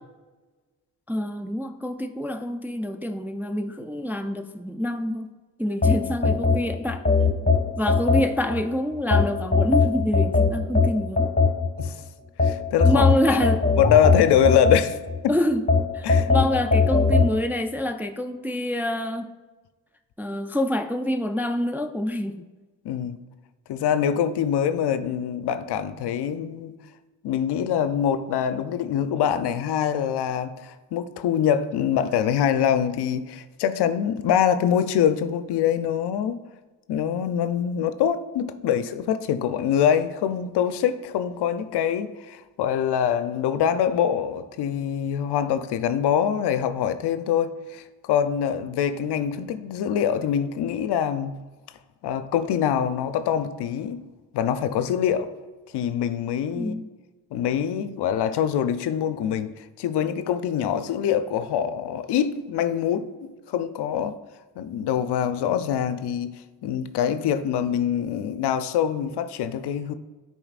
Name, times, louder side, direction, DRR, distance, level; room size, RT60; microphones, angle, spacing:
voice 1, 1.1-5.3 5.6-7.1 7.8-11.3 12.8-13.6 15.3-15.6 15.9-19.3 20.2-22.4 56.5-56.9, left 1 dB, 5° right, 0.3 m, -26 dB
sound 1, 5.8-8.6 9.1-11.9 12.4-15.2 15.7-17.3, left 4 dB, 20° left, 1.5 m, -20 dB
voice 2, 12.4-13.0 13.3-13.4 13.7-15.0 15.2-15.3 16.0-16.3 22.8-23.2 23.7-26.7 27.2-36.4 36.9-51.4 52.0-54.0 54.3-55.3 55.7-56.7 57.3-64.2 64.6-66.3 66.6-69.9, left 9 dB, 65° left, 0.6 m, -24 dB
9.9 x 4.4 x 2.4 m
supercardioid pair, 55°, 43 cm